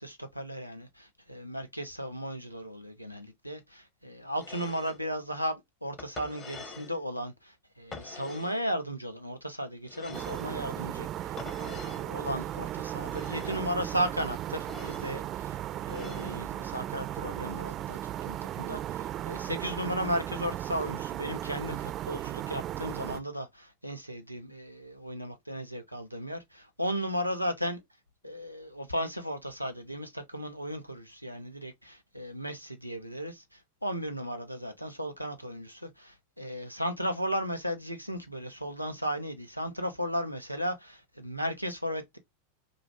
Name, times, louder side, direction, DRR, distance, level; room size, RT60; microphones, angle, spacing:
voice 1, 0.0-15.6 15.9-27.8 28.2-42.2, equal, 90° left, 0.5 m, -35 dB
sound 1, 4.4-5.0 6.0-7.0 7.9-8.6 9.9-10.5 11.4-12.1 13.0-13.7 14.6-15.1 15.9-16.4, left 4 dB, 20° left, 0.7 m, -45 dB
sound 2, 10.1-23.2, right 12 dB, 30° right, 0.3 m, -36 dB
2.4 x 2.4 x 3.0 m
figure-of-eight pair, 90°, 0 cm